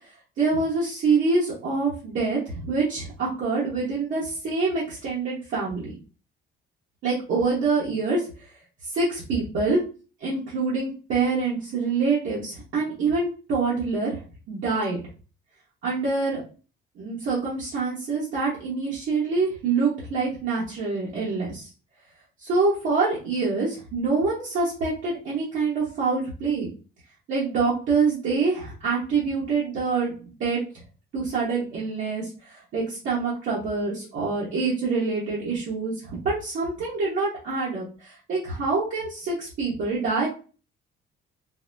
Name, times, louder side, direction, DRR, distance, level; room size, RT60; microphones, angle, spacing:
voice 1, 0.4-5.9 7.0-8.3 8.9-9.8 10.2-14.2 14.5-15.0 15.8-16.4 17.0-21.7 22.4-26.7 27.3-30.1 30.4-30.6 31.1-40.3, right 4 dB, 65° right, -8 dB, 1.2 m, -26 dB
3.9 x 2.2 x 2.6 m, 0.35 s
cardioid pair, 135°, 21 cm